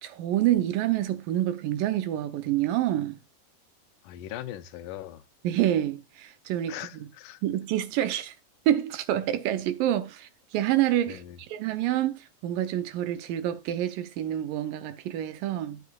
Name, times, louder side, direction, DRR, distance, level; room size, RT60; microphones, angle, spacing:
voice 1, 0.0-3.2 5.4-6.7 7.4-8.3 8.7-15.8, right 12 dB, 85° right, 2.4 m, -27 dB
voice 2, 4.0-5.2 6.7-7.4 11.1-11.4, left 12 dB, 80° left, 2.2 m, -40 dB
10.5 x 9.2 x 2.4 m
omnidirectional pair, 3.8 m